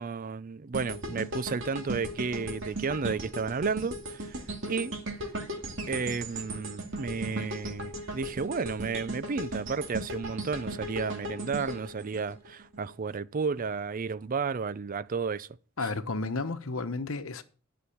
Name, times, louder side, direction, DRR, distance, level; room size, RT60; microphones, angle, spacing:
voice 1, 0.0-4.4 4.7-4.9 5.9-15.5, right 5 dB, 40° right, 0.5 m, -32 dB
sound 1, 0.7-12.9 13.3-13.5, right 1 dB, 65° right, 2.4 m, -37 dB
voice 2, 15.8-17.4, left 3 dB, 80° left, 1.0 m, -32 dB
11.5 x 6.2 x 7.0 m
head